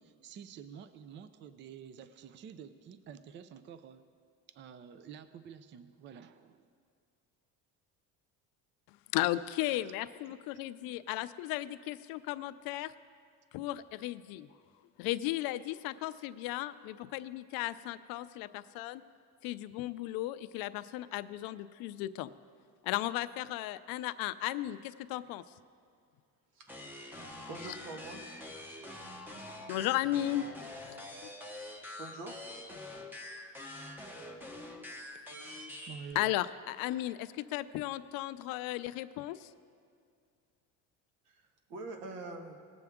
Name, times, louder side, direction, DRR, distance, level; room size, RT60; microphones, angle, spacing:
voice 1, 0.0-4.0 4.5-6.7 9.6-9.8 10.3-10.4 35.9-36.3, right 7 dB, 35° right, 12 dB, 0.4 m, -49 dB
voice 2, 9.1-12.9 13.5-14.5 15.0-19.0 19.4-22.3 22.8-25.4 27.1-27.5 29.7-30.5 36.2-39.5, left 15 dB, 75° left, 14 dB, 0.5 m, -35 dB
sound 1, 26.7-36.1, left 1 dB, 5° right, 0.8 m, -46 dB
voice 3, 27.5-28.4 32.0-32.6 41.2-42.5, right 2 dB, 80° right, 4 dB, 1.6 m, -44 dB
19.0 x 7.8 x 3.6 m, 2.2 s
cardioid pair, 150°, 35 cm